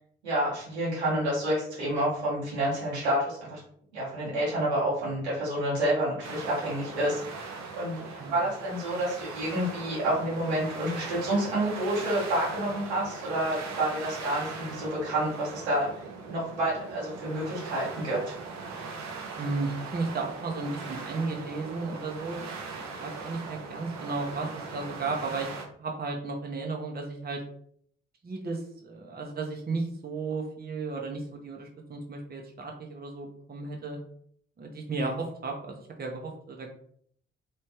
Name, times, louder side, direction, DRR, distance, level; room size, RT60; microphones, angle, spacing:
voice 1, 0.2-3.6 3.9-15.9 16.3-18.2, right 1 dB, 90° right, -8 dB, 1.5 m, -29 dB
sound 1, 6.2-25.7, right 4 dB, 60° right, 0.8 m, -40 dB
voice 2, 19.3-22.4 22.8-25.5 25.8-27.4 28.2-34.0 34.6-36.7, right 3 dB, 30° right, 1 dB, 0.9 m, -34 dB
3.3 x 3.2 x 2.9 m, 0.63 s
hypercardioid pair, 40°, 32 cm